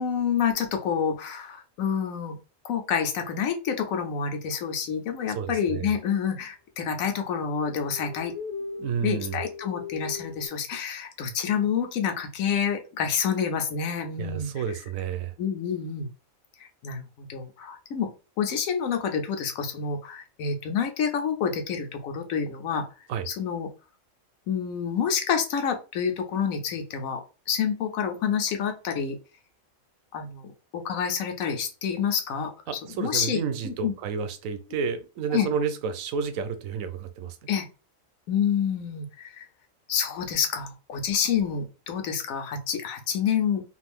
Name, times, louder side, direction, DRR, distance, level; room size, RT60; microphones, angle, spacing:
voice 1, 0.0-2.4 2.6-8.3 9.0-14.5 15.4-16.1 16.6-18.1 18.4-22.8 23.3-23.7 24.5-27.2 27.5-29.2 30.1-32.5 33.0-33.9 35.3-35.5 37.5-37.7 38.3-39.4 39.9-43.6, left 7 dB, 85° left, 1.1 m, -28 dB
voice 2, 5.2-5.9 8.8-9.4 14.2-15.3 23.1-23.3 32.7-37.5, right 6 dB, 80° right, 1.0 m, -31 dB
sound 1, 7.2-10.5, left 5 dB, 20° left, 0.4 m, -39 dB
2.8 x 2.5 x 3.5 m
omnidirectional pair, 1.4 m